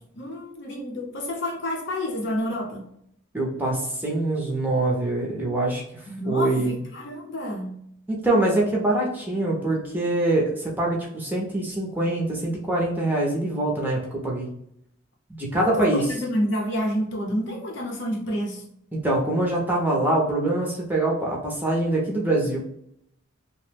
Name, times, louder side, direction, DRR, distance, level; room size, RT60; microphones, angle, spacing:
voice 1, 0.1-2.9 6.1-7.8 15.6-18.6, equal, 55° left, 0 dB, 0.7 m, -29 dB
voice 2, 3.3-6.8 8.2-14.5 15.3-16.1 18.9-22.6, right 2 dB, 10° right, -2 dB, 0.6 m, -24 dB
2.9 x 2.1 x 3.3 m, 0.73 s
head